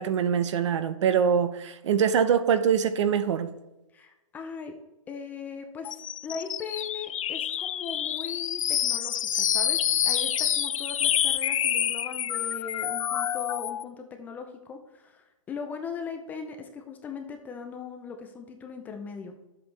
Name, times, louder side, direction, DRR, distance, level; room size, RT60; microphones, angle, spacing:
voice 1, 0.0-3.5, right 7 dB, 55° right, 0.8 m, -24 dB
voice 2, 3.9-4.7 5.1-19.4, left 5 dB, 10° left, 0.4 m, -39 dB
sound 1, 5.8-13.8, left 10 dB, 65° left, 0.5 m, -27 dB
11.0 x 7.8 x 3.3 m
hypercardioid pair, 160°, 18 cm